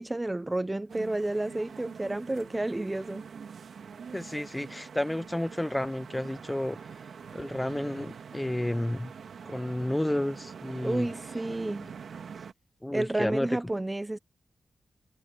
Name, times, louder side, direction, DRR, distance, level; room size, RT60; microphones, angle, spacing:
voice 1, 0.0-3.3 10.8-11.9 12.9-14.2, right 2 dB, 20° right, 1.0 m, -31 dB
sound 1, 0.9-12.5, right 6 dB, 80° right, 2.5 m, -45 dB
voice 2, 4.1-6.8 7.3-9.1 9.4-11.1 12.8-13.5, left 1 dB, 15° left, 1.0 m, -31 dB
cardioid pair, 50°, 0 cm